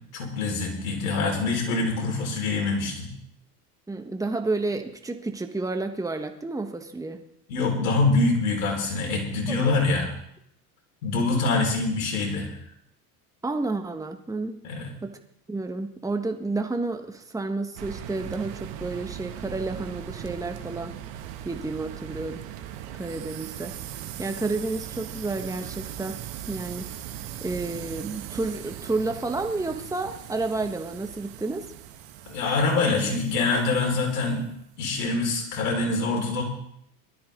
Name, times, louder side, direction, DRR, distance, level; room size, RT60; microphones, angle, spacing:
voice 1, 0.1-3.1 7.5-10.1 11.0-12.5 14.6-14.9 32.3-34.4 34.8-36.4, left 3 dB, 80° left, 0 dB, 5.6 m, -25 dB
voice 2, 3.9-7.2 9.5-9.6 13.4-14.6 15.0-15.2 15.5-20.9 21.4-22.4 23.0-23.7 24.2-26.2 26.5-26.9 27.4-31.7, right 3 dB, 5° right, 5 dB, 1.5 m, -30 dB
sound 1, 17.8-34.6, right 11 dB, 65° right, 1.8 m, -39 dB
19.5 x 13.0 x 3.9 m, 0.74 s
hypercardioid pair, 85°, 46 cm